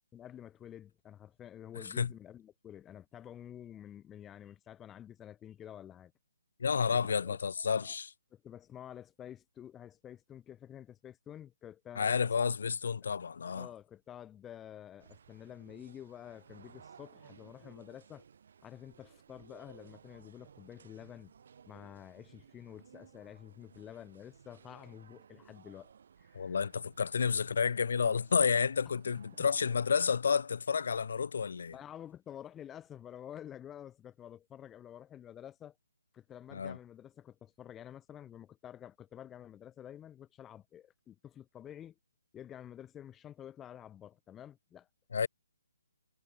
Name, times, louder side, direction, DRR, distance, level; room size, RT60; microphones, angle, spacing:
voice 1, 0.1-6.1 6.9-7.4 7.8-7.9 8.3-12.3 13.4-18.2 18.6-21.3 21.7-25.9 26.2-26.6 28.8-28.9 31.7-35.7 36.1-41.9 42.3-44.9, left 10 dB, 10° left, 1.3 m, -50 dB
voice 2, 6.6-8.1 12.0-13.7 26.3-31.7 36.5-36.8 45.1-45.3, left 6 dB, 65° left, 2.2 m, -30 dB
sound 1, 15.0-30.2, right 7 dB, 55° right, 4.0 m, -59 dB
hypercardioid pair, 160°, 0 cm